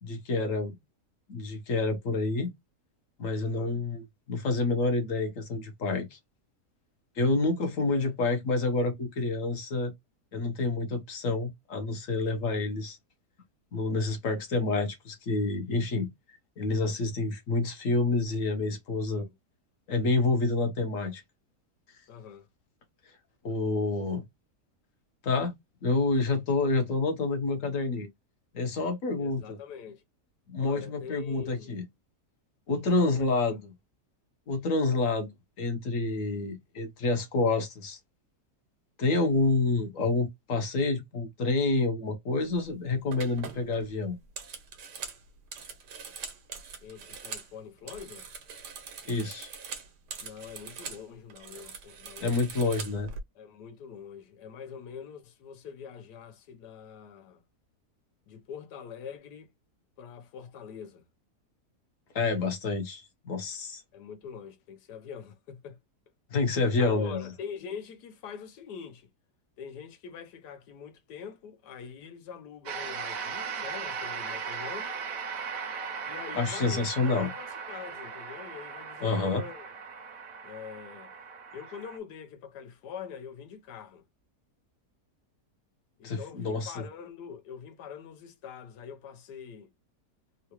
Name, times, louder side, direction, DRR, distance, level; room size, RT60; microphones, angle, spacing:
voice 1, 0.0-0.8 1.3-2.5 3.2-6.2 7.2-9.9 10.3-13.0 13.7-19.3 19.9-21.2 23.4-24.2 25.2-25.5 25.8-28.1 28.5-29.6 30.5-31.8 32.7-33.7 34.5-35.3 35.6-38.0 39.0-44.2 49.0-49.5 52.2-53.1 62.1-63.8 66.3-67.2 76.3-77.3 79.0-79.4 86.0-86.8, left 3 dB, 60° left, 1.1 m, -28 dB
voice 2, 3.4-3.8 7.9-8.1 19.1-19.3 22.1-22.5 29.2-30.0 30.6-31.7 32.9-33.1 33.4-33.6 46.8-48.3 50.2-52.5 53.3-57.4 58.3-59.5 60.0-61.0 63.9-65.8 66.8-69.1 69.6-74.9 76.1-79.7 80.4-81.1 81.5-84.0 86.0-89.7, left 7 dB, 85° left, 1.3 m, -44 dB
sound 1, 42.5-42.7 43.1-47.5 47.8-51.0 51.3-53.2, right 6 dB, 85° right, 1.4 m, -43 dB
sound 2, 72.7-82.0, right 6 dB, 65° right, 1.0 m, -38 dB
3.7 x 2.2 x 2.9 m
omnidirectional pair, 1.7 m